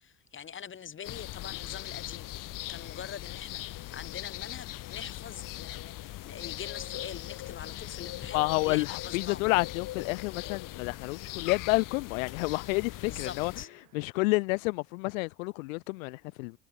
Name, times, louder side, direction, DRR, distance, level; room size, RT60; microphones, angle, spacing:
voice 1, 0.0-9.4 13.0-13.7, left 8 dB, 30° left, 1.4 m, -44 dB
sound 1, 1.0-13.6, left 16 dB, 50° left, 1.4 m, -40 dB
sound 2, 6.3-14.1, right 20 dB, 90° right, 3.4 m, -64 dB
voice 2, 8.3-13.5 13.9-16.6, left 26 dB, 85° left, 0.6 m, -29 dB
supercardioid pair, 95°, 40 cm